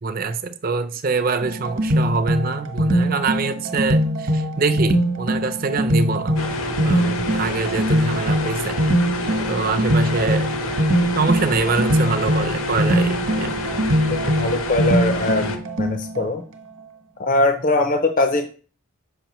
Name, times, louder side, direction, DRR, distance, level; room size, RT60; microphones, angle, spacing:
voice 1, 0.0-6.4 6.8-8.8 9.5-10.5 11.2-13.6, right 4 dB, 40° right, 0.5 m, -24 dB
sound 1, 1.4-16.3, equal, 60° right, 1.0 m, -22 dB
sound 2, 6.4-15.6, left 1 dB, 70° left, 0.9 m, -27 dB
voice 2, 14.1-16.4 17.2-18.5, left 2 dB, 35° left, 0.5 m, -21 dB
6.7 x 5.3 x 3.0 m
head